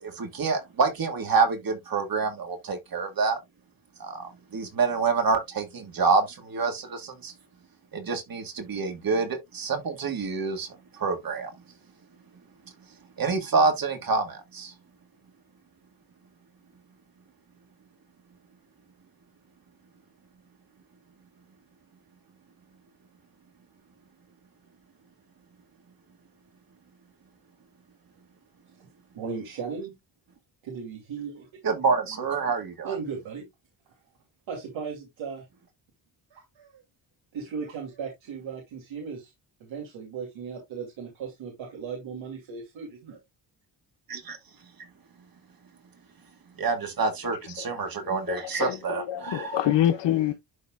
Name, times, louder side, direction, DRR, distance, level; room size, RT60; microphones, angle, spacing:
voice 1, 0.0-3.4 4.0-7.3 7.9-10.7 11.0-11.5 13.2-14.7 31.6-32.9 44.1-44.4 46.6-49.6, right 4 dB, 50° right, 2.0 m, -27 dB
voice 2, 29.1-30.0 30.6-31.5 32.5-32.6 32.8-33.5 34.5-35.4 36.3-36.8 37.3-39.3 39.6-43.2, right 6 dB, 90° right, 2.8 m, -37 dB
voice 3, 47.6-50.3, left 12 dB, 70° left, 0.7 m, -27 dB
12.0 x 4.1 x 2.4 m
cardioid pair, 105°, 45 cm